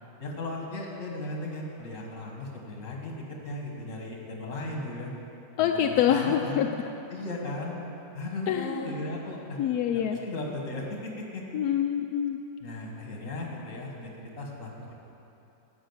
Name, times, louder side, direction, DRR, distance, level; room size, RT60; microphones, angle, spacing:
voice 1, 0.2-5.1 5.6-6.7 7.1-7.8 8.1-9.6 9.9-11.4 12.6-14.9, left 2 dB, 55° left, -1 dB, 2.0 m, -36 dB
voice 2, 5.6-6.7 8.5-8.8 9.6-10.2 11.5-12.4, left 10 dB, 85° left, 4 dB, 1.1 m, -25 dB
12.5 x 6.2 x 8.0 m, 3.0 s
omnidirectional pair, 1.6 m